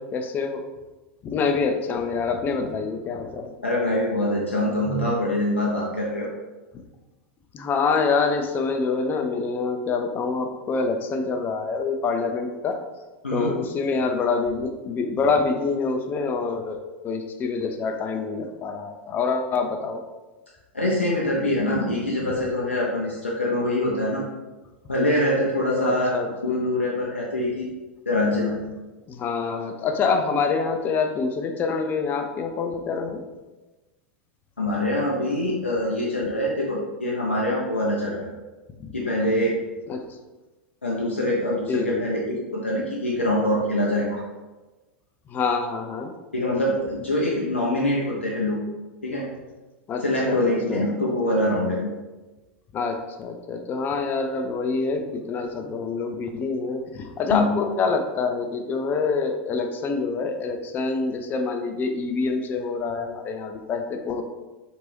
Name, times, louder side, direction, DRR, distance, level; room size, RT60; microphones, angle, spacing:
voice 1, 0.1-0.6 1.2-3.5 7.5-12.8 13.3-20.0 25.8-26.3 29.1-33.2 38.8-38.9 39.9-40.0 41.7-42.0 45.3-46.1 49.9-50.4 50.7-50.9 52.7-64.2, left 4 dB, 30° left, 5 dB, 0.4 m, -26 dB
voice 2, 3.6-6.3 13.2-13.5 20.7-24.2 24.9-27.7 28.1-28.6 34.6-38.3 38.9-39.6 40.8-44.2 46.3-48.6 49.0-49.3 50.0-51.9 57.3-57.6, left 1 dB, 90° left, -4 dB, 0.5 m, -24 dB
3.0 x 2.5 x 3.1 m, 1.2 s
figure-of-eight pair, 90°, 6 cm